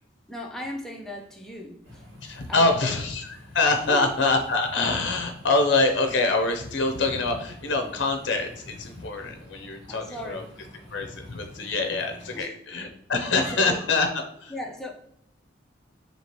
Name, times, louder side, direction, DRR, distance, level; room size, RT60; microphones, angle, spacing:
voice 1, 0.3-2.1 2.5-2.9 3.9-4.1 9.9-10.4 12.3-12.6 13.5-13.8 14.5-14.9, left 1 dB, ahead, 0 dB, 0.5 m, -37 dB
sound 1, 1.8-12.4, left 1 dB, 65° right, 1.7 m, -47 dB
voice 2, 2.2-10.4 10.9-14.1 14.4-14.5, left 3 dB, 65° left, 5 dB, 0.6 m, -25 dB
4.5 x 2.9 x 2.9 m, 0.68 s
head